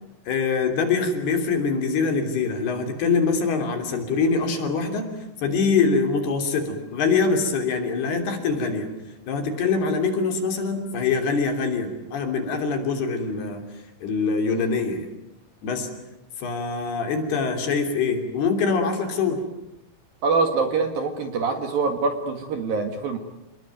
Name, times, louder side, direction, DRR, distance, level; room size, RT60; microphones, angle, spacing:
voice 1, 0.3-5.1 5.4-8.9 9.3-13.6 14.0-15.1 15.6-15.9 16.4-19.4, left 4 dB, 55° left, 5 dB, 4.8 m, -24 dB
voice 2, 20.2-23.2, right 4 dB, 55° right, 6 dB, 3.1 m, -24 dB
29.0 x 20.5 x 9.3 m, 0.91 s
omnidirectional pair, 5.7 m